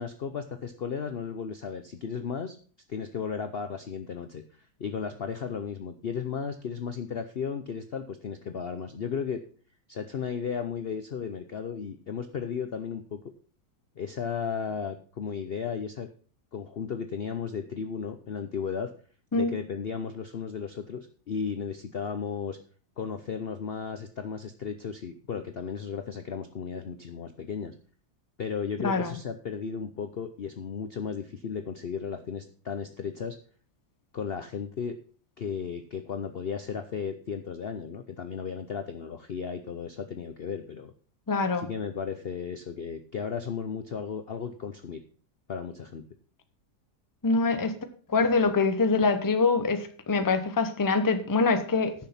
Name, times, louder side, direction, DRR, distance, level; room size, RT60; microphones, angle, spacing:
voice 1, 0.0-2.6 2.9-4.4 4.8-9.4 9.9-13.2 14.0-16.1 16.5-18.9 19.3-22.6 23.0-27.7 28.4-33.4 34.1-35.0 35.4-40.9 41.6-45.0 45.5-46.1, left 6 dB, 50° left, 8 dB, 0.7 m, -34 dB
voice 2, 28.8-29.1 41.3-41.7 47.2-47.8 48.1-51.9, left 4 dB, 15° left, 9 dB, 0.7 m, -24 dB
10.5 x 6.4 x 5.7 m, 0.42 s
omnidirectional pair, 1.8 m